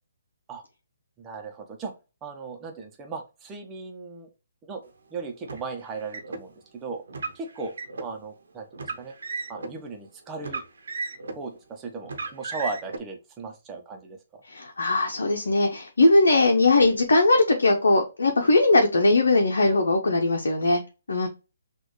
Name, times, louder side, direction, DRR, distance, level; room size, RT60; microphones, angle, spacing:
voice 1, 1.2-1.9 2.2-4.3 4.6-7.0 7.3-7.7 8.0-9.1 9.5-10.6 11.3-14.2, right 4 dB, 15° right, 3 dB, 1.1 m, -37 dB
Car, 5.4-6.4 7.1-8.1 8.7-9.7 10.4-11.5 12.0-13.0, right 3 dB, 70° right, 1.0 m, -35 dB
voice 2, 14.5-20.8 21.1-21.3, left 2 dB, 75° left, 2 dB, 1.0 m, -20 dB
6.2 x 2.7 x 3.2 m, 0.30 s
figure-of-eight pair, 140°, 0 cm